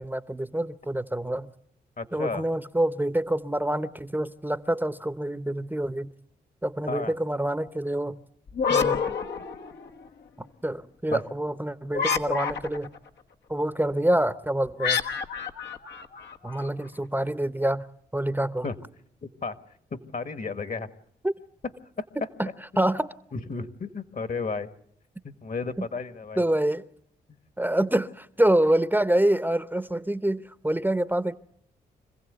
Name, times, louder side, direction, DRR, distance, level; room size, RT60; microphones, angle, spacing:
voice 1, 0.0-1.5 2.1-6.1 6.6-8.2 8.7-9.0 10.4-12.9 13.5-15.0 16.4-17.9 18.1-18.7 21.2-21.3 22.4-22.5 22.8-23.1 25.8-25.9 26.4-26.8 27.6-31.4, right 1 dB, 10° right, 13 dB, 0.8 m, -26 dB
voice 2, 2.0-2.5 6.9-7.1 9.4-9.5 11.1-11.2 18.6-18.7 19.2-19.6 19.9-20.9 22.0-22.1 23.3-24.7 25.2-26.4 27.3-27.4, left 4 dB, 50° left, 11 dB, 1.6 m, -33 dB
sound 1, 8.5-10.1 11.9-13.0 14.8-16.7, left 6 dB, 75° left, 1.3 m, -28 dB
26.0 x 15.5 x 8.1 m, 0.72 s
supercardioid pair, 50°, 18 cm